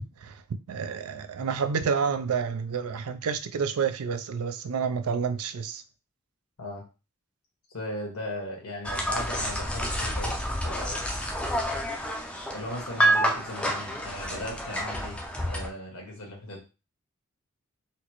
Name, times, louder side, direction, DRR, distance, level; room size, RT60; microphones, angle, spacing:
voice 1, 0.7-5.8, right 6 dB, 90° right, 0.4 m, -29 dB
voice 2, 7.7-10.3 10.6-11.1 12.5-15.2 15.4-16.7, left 1 dB, 90° left, 1.5 m, -37 dB
sound 1, 8.8-15.7, equal, 5° left, 0.4 m, -29 dB
4.2 x 2.0 x 2.9 m
head